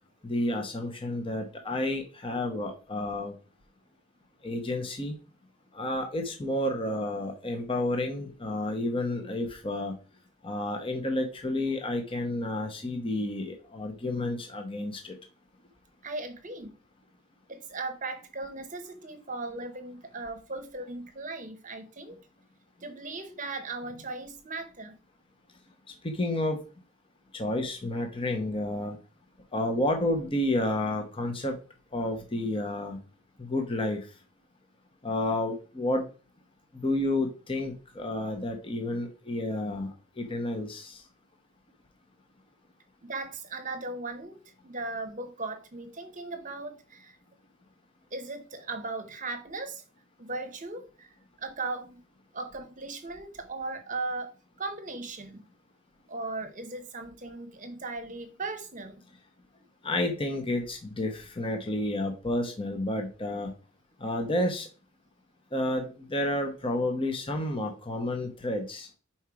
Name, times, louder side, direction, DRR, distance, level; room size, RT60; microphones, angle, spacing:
voice 1, 0.2-3.3 4.4-5.1 5.7-9.9 10.4-15.1 26.0-26.6 27.3-29.0 29.5-31.6 31.9-33.0 33.4-34.1 35.0-36.1 36.7-41.0 59.8-63.5 64.0-64.7 65.5-68.9, left 1 dB, 25° left, 0.9 m, -30 dB
voice 2, 16.0-16.8 17.5-22.2 22.8-25.0 43.0-47.2 48.1-49.8 50.2-52.0 52.3-54.3 54.6-55.5 56.1-59.0, right 3 dB, 40° right, 1.0 m, -37 dB
5.5 x 4.4 x 4.7 m
head